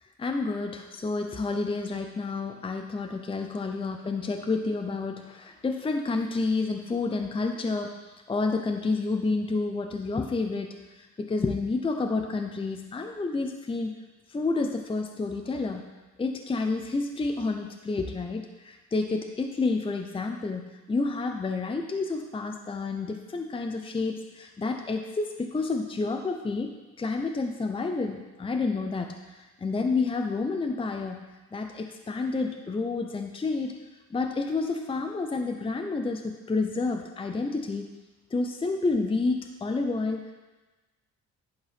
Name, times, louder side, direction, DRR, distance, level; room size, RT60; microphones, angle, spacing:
voice 1, 0.2-8.0 8.3-13.9 14.3-15.8 16.2-20.6 20.9-26.7 27.0-31.2 31.5-33.8 34.1-37.9 38.3-40.3, left 3 dB, 20° left, 4 dB, 0.6 m, -29 dB
11.0 x 3.8 x 5.6 m, 1.2 s
cardioid pair, 90°, 30 cm